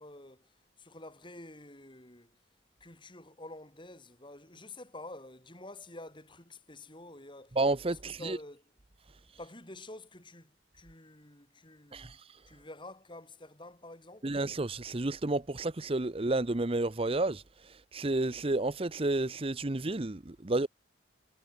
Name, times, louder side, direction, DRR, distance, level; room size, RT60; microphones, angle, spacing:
voice 1, 0.0-2.4 2.8-7.6 7.9-8.7 9.4-12.2 12.5-14.4, left 2 dB, 25° left, 7.5 m, -49 dB
voice 2, 7.6-8.4 11.9-12.2 14.2-20.7, right 2 dB, 30° right, 0.8 m, -31 dB
head